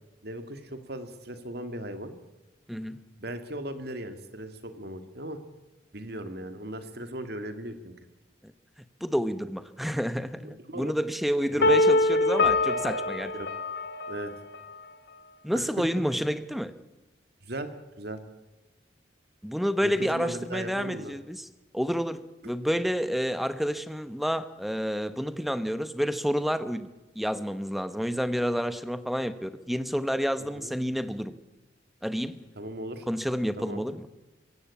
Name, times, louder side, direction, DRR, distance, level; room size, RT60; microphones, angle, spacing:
voice 1, 0.2-2.1 3.2-5.4 5.9-7.9 10.4-10.9 11.5-11.7 13.3-13.5 14.1-14.3 15.5-15.8 17.4-17.7 18.0-18.2 19.8-21.1 30.5-30.7 32.6-33.1 33.6-33.8, right 1 dB, 55° right, 8 dB, 2.3 m, -37 dB
voice 2, 2.7-3.0 9.0-13.3 15.4-16.7 19.4-21.5 21.7-26.9 27.1-31.3 32.0-32.4 33.1-34.1, equal, ahead, 12 dB, 1.0 m, -29 dB
sound 1, 11.6-14.6, left 2 dB, 65° left, 1.9 m, -24 dB
24.0 x 16.5 x 8.5 m, 1.1 s
head